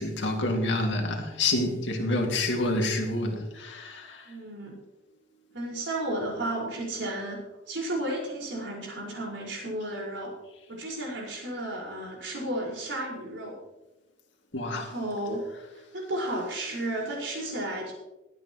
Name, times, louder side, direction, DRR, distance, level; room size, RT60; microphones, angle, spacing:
voice 1, 0.0-4.3 14.5-14.9, left 2 dB, 85° left, 2 dB, 2.3 m, -28 dB
voice 2, 4.3-4.8 5.5-7.4 7.7-10.3 10.7-13.6 14.7-15.4 15.9-17.9, right 1 dB, 90° right, -3 dB, 5.0 m, -33 dB
21.0 x 9.1 x 3.1 m, 1.0 s
head